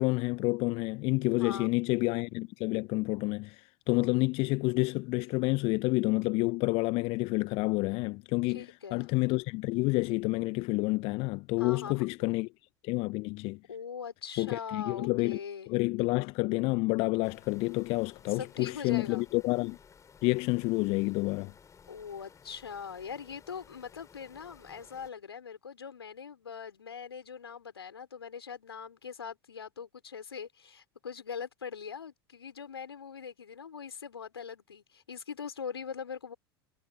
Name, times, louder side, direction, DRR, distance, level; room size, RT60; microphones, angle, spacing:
voice 1, 0.0-12.5 12.8-13.6 14.4-15.4 15.7-19.8 20.2-21.5, left 25 dB, 45° left, 1.0 m, -29 dB
voice 2, 1.4-1.7 8.5-9.1 11.6-12.3 13.7-15.7 18.3-19.3 21.9-36.3, left 6 dB, 75° left, 5.1 m, -42 dB
sound 1, 17.2-25.1, left 6 dB, 25° left, 5.2 m, -57 dB
figure-of-eight pair, 75°, 13 cm